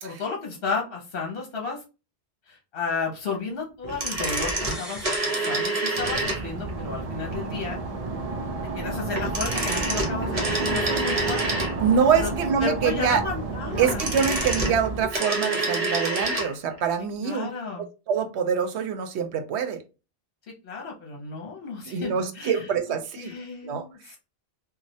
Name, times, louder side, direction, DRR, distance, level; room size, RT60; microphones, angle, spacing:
voice 1, 0.0-1.8 2.5-7.8 8.7-11.7 12.1-12.3 12.6-14.0 17.2-17.9 20.6-22.6 23.2-24.2, left 4 dB, 60° left, 0 dB, 0.9 m, -33 dB
sound 1, 3.8-6.7 9.1-12.0 13.7-16.5 16.8-16.9, right 2 dB, 40° right, 0.8 m, -27 dB
sound 2, 4.6-6.6 6.9-7.0, equal, ahead, 0.6 m, -42 dB
sound 3, 6.0-15.1, right 3 dB, 55° right, 0.4 m, -31 dB
voice 2, 11.8-13.2 13.8-17.5 17.8-19.8 21.8-23.3 23.6-23.8, right 7 dB, 90° right, 7 dB, 0.9 m, -25 dB
3.1 x 2.3 x 2.7 m, 0.30 s
omnidirectional pair, 1.1 m